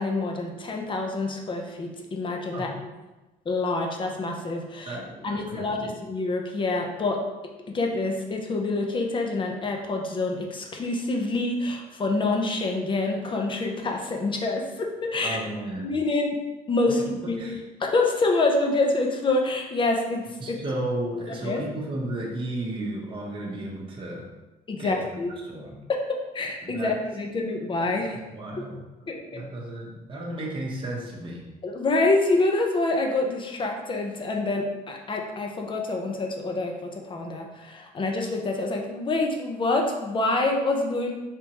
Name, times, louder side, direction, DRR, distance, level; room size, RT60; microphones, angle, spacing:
voice 1, 0.0-2.9 3.5-5.0 5.2-7.2 7.7-15.4 15.8-16.4 16.7-20.6 21.3-21.6 24.7-25.3 25.9-26.0 26.3-28.2 28.6-28.7 29.1-29.4 31.6-41.1, left 2 dB, 30° left, 2 dB, 0.6 m, -26 dB
voice 2, 4.9-6.0 15.2-15.9 16.9-17.6 20.4-24.3 24.8-25.8 26.6-27.0 28.0-28.8 29.3-31.5, right 1 dB, 30° right, -3 dB, 0.8 m, -34 dB
3.5 x 2.8 x 2.8 m, 1.1 s
cardioid pair, 110°, 17 cm